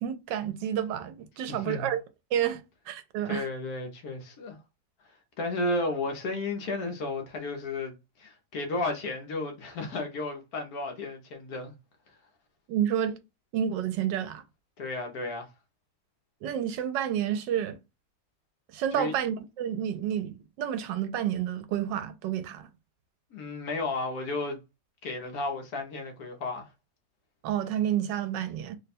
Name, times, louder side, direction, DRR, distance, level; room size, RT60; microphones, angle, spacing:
voice 1, 0.0-2.0 2.3-3.5 12.7-13.2 13.5-14.4 16.4-17.8 18.7-22.7 27.4-28.8, right 10 dB, 80° right, 1.2 m, -30 dB
voice 2, 1.5-1.9 3.2-4.6 5.4-11.7 14.8-15.5 18.9-19.1 23.3-24.6 25.0-26.7, left 2 dB, 65° left, 1.1 m, -33 dB
3.2 x 2.2 x 4.1 m
omnidirectional pair, 1.9 m